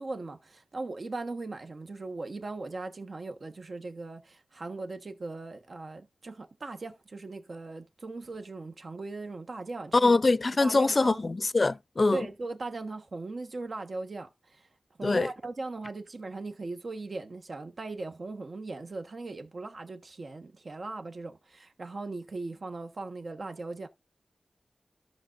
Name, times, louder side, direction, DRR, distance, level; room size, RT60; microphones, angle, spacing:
voice 1, 0.0-10.2 10.6-11.3 12.1-14.7 15.0-23.9, right 3 dB, 60° right, 1.2 m, -39 dB
voice 2, 10.0-12.3 15.0-15.3, left 3 dB, 45° left, 0.5 m, -24 dB
14.0 x 6.5 x 2.5 m
wide cardioid pair, 90°, 0 cm